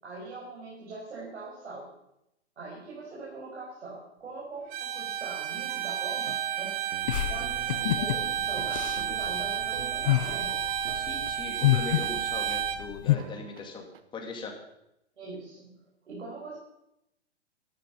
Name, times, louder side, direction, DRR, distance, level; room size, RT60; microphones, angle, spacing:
voice 1, 0.0-1.9 2.6-6.7 7.3-10.6 15.2-16.6, right 3 dB, 80° right, -6 dB, 5.8 m, -42 dB
Bowed string instrument, 4.7-12.8, right 10 dB, 25° right, 1.1 m, -31 dB
sound 1, 5.6-11.7 12.0-12.8 13.2-14.0, right 9 dB, 60° right, 1.2 m, -47 dB
sound 2, 7.1-13.2, left 15 dB, 30° left, 0.4 m, -29 dB
voice 2, 10.9-13.8 14.1-14.5, left 3 dB, 15° left, 1 dB, 2.5 m, -39 dB
13.0 x 13.0 x 5.5 m, 0.84 s
hypercardioid pair, 135°, 33 cm